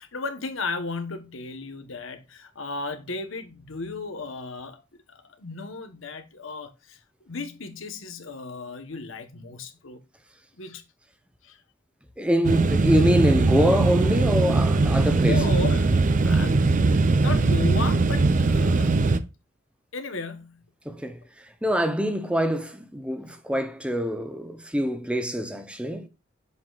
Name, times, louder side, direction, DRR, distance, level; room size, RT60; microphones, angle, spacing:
voice 1, 0.0-4.8 5.1-7.0 7.3-10.0 10.6-10.8 11.4-11.6 15.1-16.8 17.1-18.9 19.9-20.7, left 4 dB, 90° left, 1.1 m, -35 dB
voice 2, 12.2-15.5 20.8-26.1, equal, 5° right, 0.8 m, -25 dB
sound 1, 12.4-19.2, right 3 dB, 40° right, 0.5 m, -20 dB
7.6 x 5.9 x 2.4 m
head